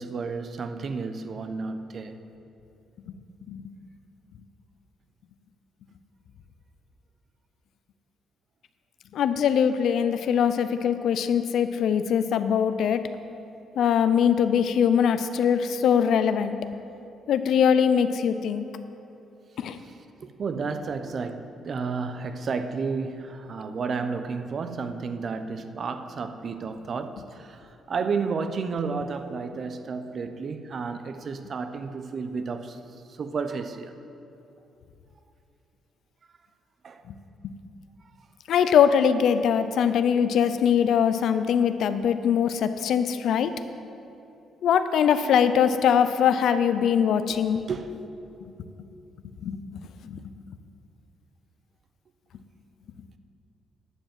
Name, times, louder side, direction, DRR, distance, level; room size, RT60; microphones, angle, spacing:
voice 1, 0.0-2.2 19.7-32.8 33.1-33.9 36.8-37.0 43.4-43.5 47.3-48.0, right 4 dB, 50° right, 0.7 m, -32 dB
voice 2, 9.1-13.0 13.8-16.6 17.3-18.6 19.6-19.8 38.5-43.5 44.6-47.6 49.4-49.6 50.1-50.2, left 8 dB, 75° left, 0.5 m, -22 dB
11.0 x 5.4 x 7.6 m
cardioid pair, 90°, 0 cm